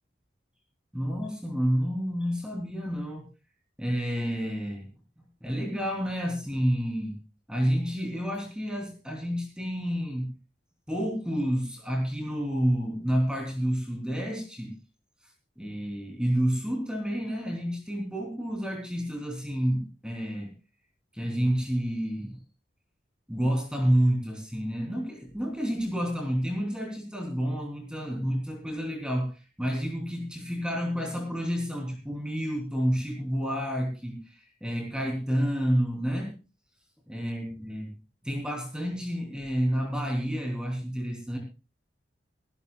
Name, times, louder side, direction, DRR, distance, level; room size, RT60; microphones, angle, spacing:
voice 1, 0.9-3.3 3.8-4.9 5.4-7.2 7.5-10.3 10.9-14.7 15.6-20.5 21.1-22.4 23.3-36.4 37.1-37.9 38.2-41.4, equal, 5° right, 1 dB, 3.3 m, -29 dB
23.0 x 12.5 x 2.4 m, 0.29 s
head